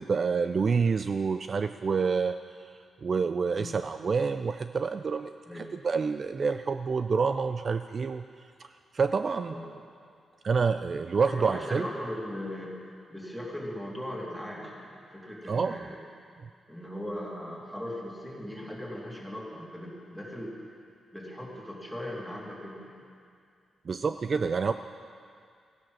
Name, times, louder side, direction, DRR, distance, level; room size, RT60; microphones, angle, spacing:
voice 1, 0.0-2.4 3.0-8.2 8.6-8.7 8.9-9.5 10.4-11.9 15.5-15.9 23.9-24.7, right 5 dB, 45° right, 10 dB, 0.3 m, -28 dB
voice 2, 11.2-16.0 16.7-20.6 21.1-23.0, left 1 dB, ahead, -3 dB, 2.9 m, -39 dB
14.5 x 10.5 x 6.4 m, 2.3 s
cardioid pair, 100°, 0 cm